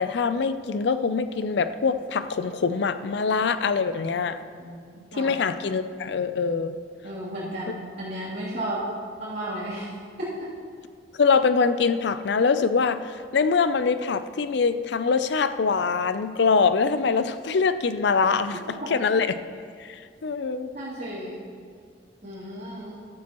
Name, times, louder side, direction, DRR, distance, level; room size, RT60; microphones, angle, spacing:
voice 1, 0.0-4.4 5.2-6.8 11.2-19.3 19.8-20.7, left 5 dB, 65° left, 12 dB, 0.5 m, -24 dB
voice 2, 4.6-5.4 7.0-8.8 9.2-10.5 18.8-19.0 20.7-21.4 22.2-23.0, right 1 dB, 65° right, -11 dB, 3.1 m, -34 dB
13.5 x 12.5 x 3.0 m, 2.1 s
head